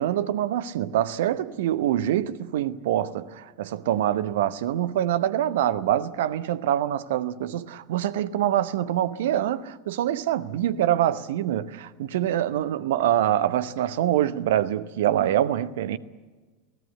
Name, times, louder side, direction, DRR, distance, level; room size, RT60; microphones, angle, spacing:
voice 1, 0.0-16.0, right 11 dB, 60° right, 1.0 m, -25 dB
24.0 x 17.5 x 8.2 m
figure-of-eight pair, 80°, 0 cm